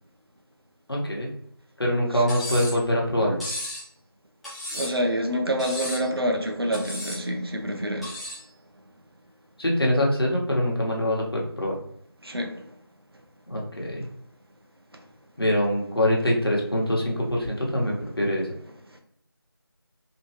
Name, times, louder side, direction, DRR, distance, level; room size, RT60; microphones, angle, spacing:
voice 1, 0.9-1.3 1.8-3.4 9.6-11.7 13.5-14.0 15.4-18.5, left 1 dB, 70° left, -2 dB, 1.4 m, -24 dB
Cutlery silverware, 2.3-2.8 3.4-3.8 4.4-5.1 5.6-6.1 6.7-7.2 8.0-8.4, left 1 dB, ahead, 0.4 m, -34 dB
voice 2, 4.7-8.2 12.2-12.7 14.9-15.0 18.9-19.0, equal, 70° right, 3 dB, 0.9 m, -27 dB
3.6 x 3.1 x 3.0 m, 0.69 s
figure-of-eight pair, 170°, 13 cm